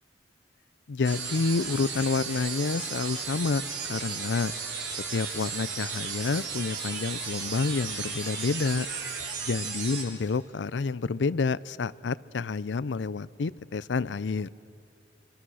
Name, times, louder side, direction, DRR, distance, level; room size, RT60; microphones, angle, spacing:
voice 1, 0.9-4.5 5.1-8.9 9.4-14.5, left 4 dB, 80° left, 19 dB, 0.5 m, -29 dB
sound 1, 1.0-10.0, right 5 dB, 90° right, 4.0 m, -35 dB
26.0 x 24.0 x 6.4 m, 2.6 s
head